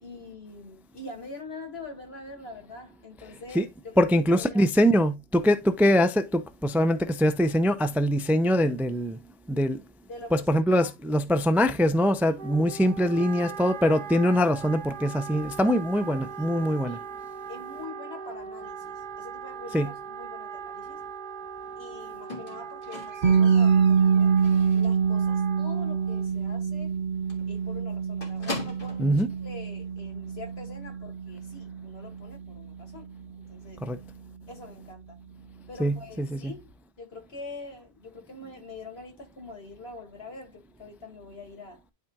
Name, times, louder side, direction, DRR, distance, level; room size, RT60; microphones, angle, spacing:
voice 1, 0.0-4.7 10.1-11.3 12.3-12.7 16.4-17.1 17.5-21.0 21.8-26.9 27.5-33.8 34.5-35.2 35.7-41.8, left 3 dB, 75° left, 2.5 m, -44 dB
voice 2, 4.0-9.2 9.5-9.8 10.3-17.0 19.7-19.9 29.0-29.3 33.8-34.0 35.8-36.5, equal, ahead, 0.4 m, -23 dB
Wind instrument woodwind instrument, 12.4-26.4, right 6 dB, 55° right, 0.8 m, -40 dB
Squeak, 22.3-25.1 25.4-25.8 26.1-26.2 26.5-26.6 26.9-27.0 27.3-29.1 30.0-30.1, left 2 dB, 55° left, 2.4 m, -40 dB
sound 1, 23.2-35.1, right 6 dB, 75° right, 1.3 m, -26 dB
12.0 x 4.3 x 2.4 m
omnidirectional pair, 1.1 m